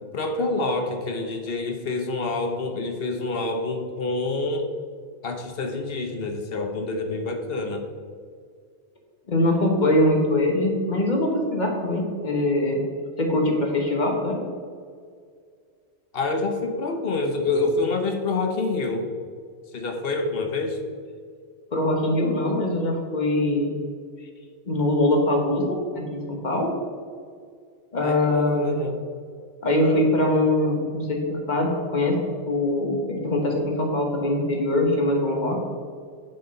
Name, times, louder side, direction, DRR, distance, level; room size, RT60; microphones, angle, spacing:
voice 1, 0.0-4.6 5.2-7.9 16.1-19.1 19.7-20.8 24.2-24.3 28.0-29.0, left 3 dB, 60° left, 5 dB, 1.1 m, -27 dB
voice 2, 9.3-12.8 13.2-14.4 21.7-23.7 24.7-26.7 27.9-28.8 29.6-32.2 32.5-35.6, left 1 dB, 40° left, 1 dB, 1.5 m, -22 dB
7.2 x 5.9 x 5.3 m, 2.1 s
omnidirectional pair, 1.2 m